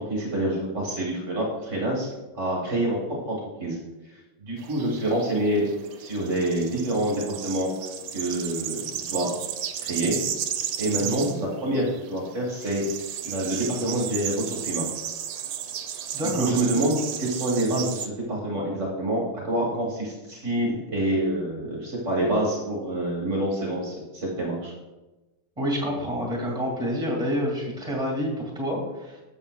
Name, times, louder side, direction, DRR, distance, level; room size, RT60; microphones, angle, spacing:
voice 1, 0.0-2.1 2.4-3.0 3.3-3.8 4.1-5.6 6.0-7.7 8.1-9.3 9.8-10.2 10.8-12.8 13.2-14.8 16.4-24.7, right 1 dB, 40° right, -3 dB, 1.7 m, -27 dB
sound 1, 4.6-18.1, right 9 dB, 90° right, 1.5 m, -34 dB
voice 2, 11.0-11.3 16.1-16.5 25.6-29.2, equal, 15° right, -1 dB, 2.2 m, -28 dB
12.0 x 7.4 x 2.4 m, 1.1 s
omnidirectional pair, 2.3 m